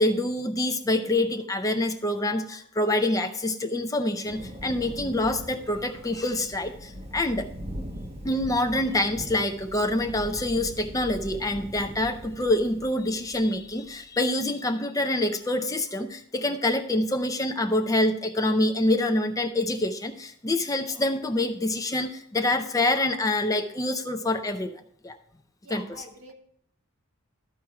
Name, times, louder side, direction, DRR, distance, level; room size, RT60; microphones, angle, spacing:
voice 1, 0.0-7.5 8.2-25.2 25.7-26.0, left 1 dB, 15° left, 7 dB, 0.5 m, -26 dB
Thunder, 4.3-13.9, equal, 25° right, 1.2 m, -41 dB
voice 2, 25.6-26.3, equal, 85° right, 3 dB, 1.8 m, -46 dB
13.0 x 4.5 x 4.7 m, 0.66 s
head